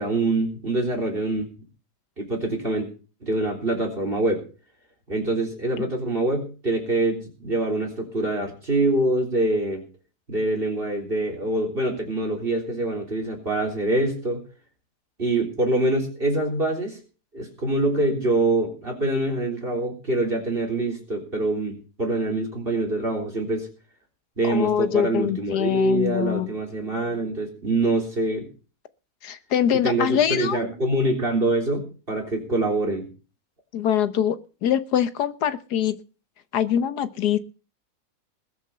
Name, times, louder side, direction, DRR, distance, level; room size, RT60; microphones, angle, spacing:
voice 1, 0.0-1.5 2.2-2.9 3.2-4.4 5.1-9.8 10.3-14.4 15.2-17.0 17.3-23.7 24.4-28.5 29.8-33.1, right 2 dB, 35° right, 3 dB, 3.9 m, -25 dB
voice 2, 24.4-26.5 29.2-30.6 33.7-36.0 36.5-37.4, left 9 dB, 80° left, 13 dB, 1.6 m, -23 dB
20.5 x 7.3 x 5.7 m, 0.35 s
omnidirectional pair, 1.7 m